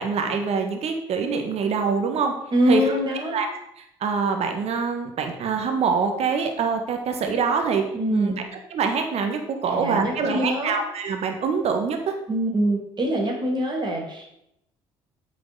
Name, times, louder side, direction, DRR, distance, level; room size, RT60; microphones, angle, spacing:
voice 1, 0.0-2.3 2.7-2.8 3.3-3.5 3.8-7.8 8.1-8.3 8.7-12.2, right 5 dB, 50° right, 5 dB, 1.6 m, -25 dB
voice 2, 2.5-3.4 7.9-8.4 9.6-10.7 12.3-14.3, equal, 35° right, 0 dB, 3.3 m, -24 dB
8.3 x 5.0 x 5.6 m, 0.79 s
hypercardioid pair, 65°, 13 cm